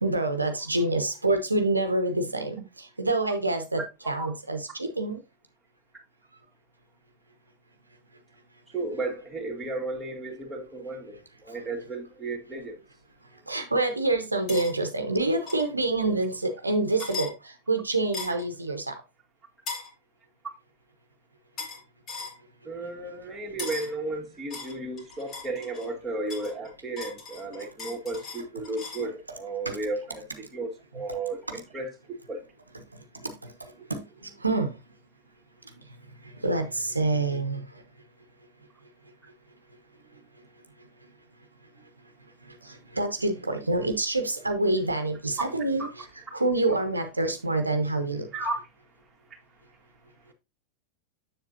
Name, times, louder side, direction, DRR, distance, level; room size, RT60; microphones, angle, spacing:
voice 1, 0.0-5.2 11.5-11.6 13.5-19.0 29.6-29.8 31.5-31.6 33.1-34.7 36.2-37.8 42.4-46.0 46.3-48.3, right 2 dB, 80° right, 0.8 m, -27 dB
voice 2, 8.7-12.8 22.6-32.4 33.8-33.9 45.8-45.9 48.3-48.6, right 2 dB, 10° right, 2.0 m, -34 dB
sound 1, 14.5-14.7 15.5-15.7 17.0-17.3 18.1-18.5 19.7-19.9 21.6-21.8 22.1-22.4 23.6-23.9 24.5-25.9 26.3-29.1, left 4 dB, 35° left, 2.5 m, -38 dB
7.3 x 7.2 x 2.7 m
figure-of-eight pair, 90°, 0 cm